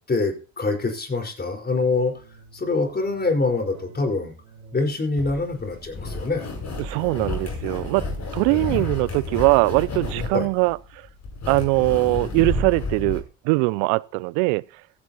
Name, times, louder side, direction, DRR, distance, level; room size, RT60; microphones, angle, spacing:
voice 1, 0.1-2.1 2.5-4.3 4.7-6.5 8.5-8.8 10.3-10.5, left 3 dB, 25° left, 4.8 m, -25 dB
sound 1, 1.8-10.8, right 3 dB, 80° right, 5.4 m, -51 dB
sound 2, 5.2-13.2, left 2 dB, 40° left, 8.0 m, -31 dB
voice 2, 6.8-8.1 8.3-11.1 11.5-14.6, right 26 dB, 65° right, 0.5 m, -21 dB
15.5 x 15.5 x 2.9 m
hypercardioid pair, 70°, 41 cm